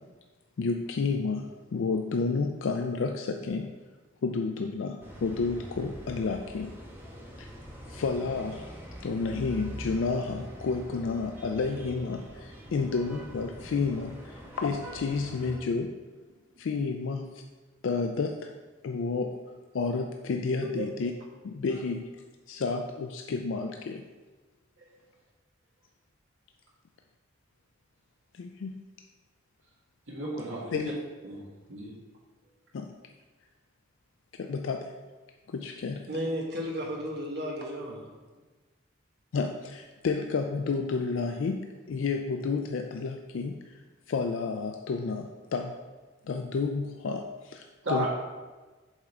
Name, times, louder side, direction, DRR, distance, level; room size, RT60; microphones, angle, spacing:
voice 1, 0.6-3.7 4.2-6.7 7.4-7.5 7.9-8.7 9.0-15.9 16.6-17.4 17.8-18.5 18.8-19.3 19.7-21.1 21.4-22.1 22.5-24.0 28.3-28.7 30.7-30.9 32.7-32.9 34.4-34.9 35.5-36.0 39.3-41.6 41.9-43.8 44.1-45.7 46.3-48.1, left 4 dB, 75° left, 4 dB, 0.4 m, -31 dB
sound 1, 5.0-15.6, equal, 10° right, 0.9 m, -44 dB
voice 2, 30.1-30.8 31.2-31.4 31.7-31.9 47.8-48.1, right 1 dB, 75° right, -4 dB, 1.7 m, -33 dB
voice 3, 36.1-38.1, equal, 50° right, -1 dB, 1.2 m, -33 dB
7.3 x 3.7 x 4.5 m, 1.3 s
head